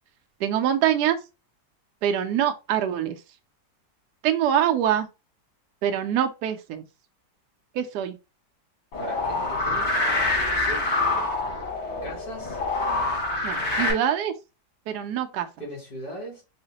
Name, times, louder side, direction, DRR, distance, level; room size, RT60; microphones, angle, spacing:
voice 1, 0.4-1.2 2.0-3.2 4.2-5.1 5.8-6.8 7.7-8.1 13.4-14.3 14.9-15.5, right 10 dB, 75° right, 1.1 m, -24 dB
sound 1, 8.9-13.9, left 2 dB, 85° left, 2.7 m, -26 dB
voice 2, 9.0-10.0 10.5-10.9 12.0-12.6 15.6-16.4, equal, 65° left, 2.8 m, -38 dB
5.6 x 2.0 x 3.9 m
omnidirectional pair, 1.8 m